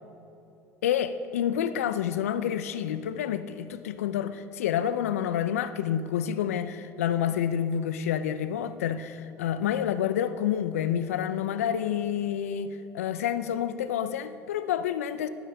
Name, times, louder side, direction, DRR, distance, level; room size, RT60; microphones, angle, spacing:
voice 1, 0.8-15.3, left 9 dB, 85° left, 11 dB, 0.4 m, -28 dB
19.5 x 8.9 x 2.3 m, 2.8 s
hypercardioid pair, 70°, 8 cm